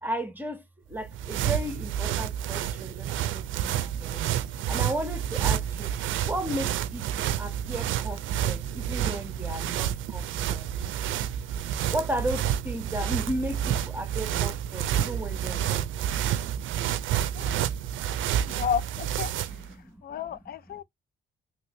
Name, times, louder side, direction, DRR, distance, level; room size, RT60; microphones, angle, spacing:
voice 1, 0.0-0.6 0.9-4.2 4.7-5.9 6.2-10.2 10.5-10.7 11.9-15.9 19.7-20.2, right 1 dB, 10° right, 1.0 m, -34 dB
sound 1, 0.9-19.7, right 10 dB, 75° right, 0.4 m, -29 dB
voice 2, 18.5-19.3 20.0-20.8, left 8 dB, 50° left, 0.5 m, -32 dB
3.0 x 2.9 x 3.1 m
cardioid pair, 90°, 20 cm